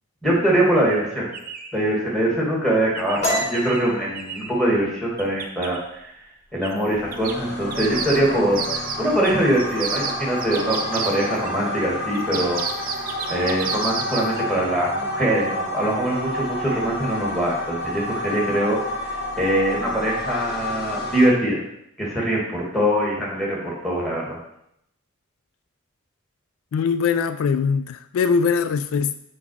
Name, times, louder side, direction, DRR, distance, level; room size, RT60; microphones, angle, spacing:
voice 1, 0.2-1.3 1.7-5.8 6.5-12.6 13.3-18.8 19.4-21.6 22.0-24.4, right 1 dB, ahead, -4 dB, 2.0 m, -23 dB
sound 1, 0.9-1.0 1.3-1.8 2.9-4.6 5.2-5.8 6.6-6.8 7.1-11.5 12.1-14.4, right 6 dB, 40° right, 0.6 m, -31 dB
sound 2, 3.2-6.7 7.0-7.3 7.7-8.2 8.5-9.2, equal, 30° left, 1.0 m, -30 dB
sound 3, 6.8-21.3, left 1 dB, 45° left, 1.4 m, -30 dB
voice 2, 26.7-29.1, left 5 dB, 80° left, 12 dB, 0.3 m, -21 dB
6.1 x 4.8 x 4.6 m, 0.76 s
head